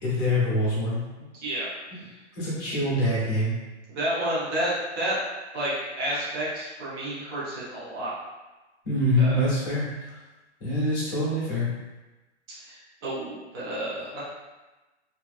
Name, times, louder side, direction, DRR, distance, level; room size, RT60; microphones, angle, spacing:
voice 1, 0.0-1.0 2.3-3.5 8.8-10.1 10.6-11.7, left 1 dB, 20° left, -8 dB, 0.8 m, -25 dB
voice 2, 1.2-1.7 3.9-5.2 5.5-8.1 9.2-9.5 12.6-14.2, right 1 dB, 20° right, -9 dB, 0.6 m, -30 dB
2.6 x 2.2 x 2.4 m, 1.1 s
hypercardioid pair, 155°, 36 cm